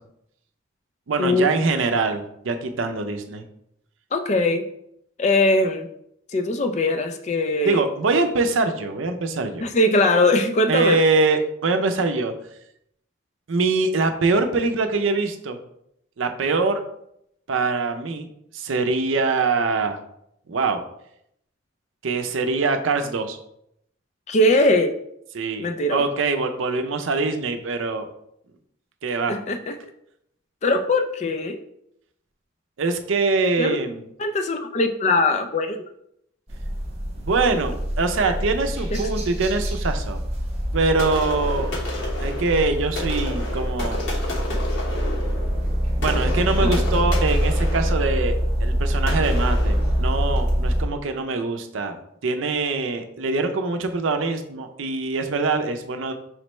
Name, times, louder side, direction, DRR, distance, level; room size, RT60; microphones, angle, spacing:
voice 1, 1.1-3.4 7.6-9.6 10.7-12.3 13.5-15.6 16.2-16.8 17.5-18.3 18.5-20.0 20.5-20.8 22.0-23.4 25.3-28.1 29.0-29.4 32.8-34.1 37.2-40.2 40.7-41.7 42.2-44.0 46.0-48.3 48.6-52.0 52.2-56.1, right 3 dB, 80° right, 6 dB, 0.5 m, -23 dB
voice 2, 4.1-4.7 5.2-5.9 6.3-7.8 9.6-11.0 24.3-24.9 25.6-26.1 29.3-29.8 30.6-31.6 33.6-33.8 34.2-35.8 38.2-38.3 38.9-39.1 46.6-46.7, left 2 dB, 35° left, 7 dB, 0.3 m, -21 dB
sound 1, 36.5-50.8, equal, 30° right, 0.9 m, -25 dB
sound 2, 41.0-50.6, left 2 dB, 75° left, 1.2 m, -33 dB
5.0 x 3.2 x 3.1 m, 0.76 s
head